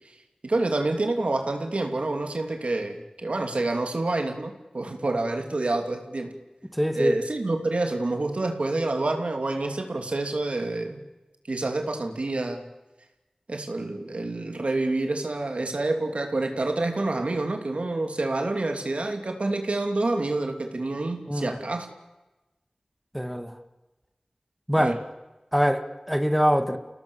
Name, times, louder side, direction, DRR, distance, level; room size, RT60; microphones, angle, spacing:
voice 1, 0.4-6.3 6.9-11.0 11.5-12.6 13.5-21.9 24.8-25.0, right 2 dB, 75° right, 4 dB, 3.0 m, -28 dB
voice 2, 6.7-7.2 21.3-21.6 23.1-23.6 24.7-25.0 25.5-26.8, equal, ahead, 7 dB, 2.0 m, -24 dB
30.0 x 18.0 x 7.2 m, 1.1 s
wide cardioid pair, 45°, 2 cm